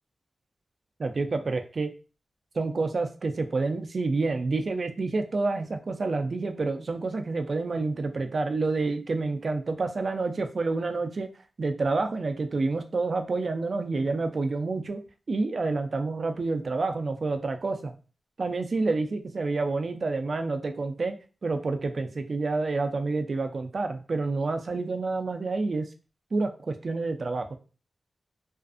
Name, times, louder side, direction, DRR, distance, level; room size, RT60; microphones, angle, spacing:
voice 1, 1.0-1.9 2.5-11.3 11.6-15.0 15.3-17.9 18.4-21.1 21.4-25.9 26.3-27.6, right 3 dB, 55° right, 7 dB, 0.4 m, -28 dB
2.5 x 2.4 x 2.4 m, 0.34 s
wide cardioid pair, 95°, 0 cm